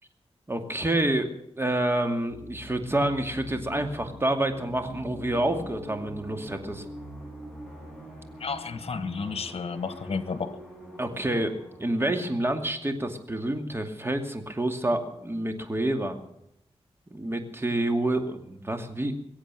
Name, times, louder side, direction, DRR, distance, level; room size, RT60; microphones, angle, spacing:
voice 1, 0.5-6.8 11.0-11.5 11.8-16.2 17.1-19.1, right 1 dB, 20° right, 6 dB, 2.5 m, -28 dB
sound 1, 2.3-13.8, equal, 5° left, 6.7 m, -43 dB
voice 2, 8.4-10.6, left 5 dB, 65° left, 12 dB, 1.4 m, -32 dB
22.0 x 8.3 x 7.7 m, 0.77 s
cardioid pair, 70°, 11 cm